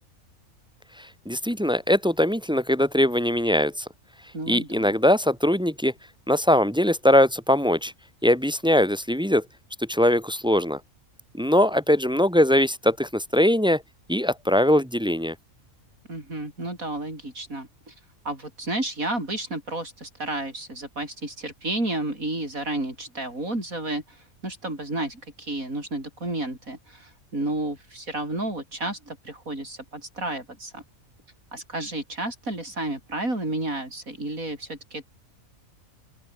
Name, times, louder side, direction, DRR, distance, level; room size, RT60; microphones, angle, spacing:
voice 1, 1.0-3.8 4.5-5.9 6.3-7.9 8.2-9.4 9.8-10.8 11.3-13.8 14.1-15.3, left 1 dB, 5° right, 1.4 m, -21 dB
voice 2, 4.3-4.9 16.1-17.9 18.2-30.8 31.5-35.1, right 2 dB, 80° right, 8.0 m, -31 dB
open air
omnidirectional pair, 1.4 m